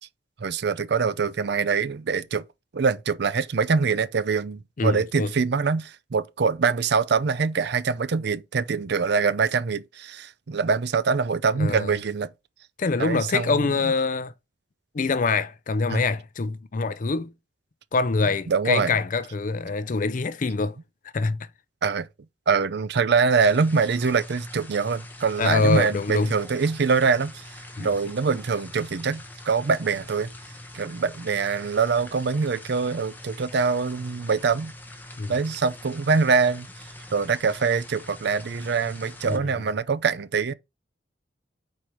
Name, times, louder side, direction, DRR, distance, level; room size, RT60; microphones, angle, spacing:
voice 1, 0.4-2.4 2.7-12.3 13.0-13.6 15.9-16.1 18.5-19.0 21.8-22.1 22.5-27.5 27.8-30.3 30.7-34.7 35.3-36.7 37.1-40.5, right 5 dB, 60° right, 0.5 m, -24 dB
voice 2, 4.8-5.3 11.6-11.9 12.8-14.3 14.9-17.3 17.9-20.8 21.1-21.5 25.4-26.3 27.8-27.9 35.2-35.3 39.2-39.5, left 4 dB, 45° left, 0.5 m, -25 dB
sound 1, 23.4-39.4, left 1 dB, 10° left, 0.8 m, -44 dB
4.5 x 4.3 x 4.9 m
head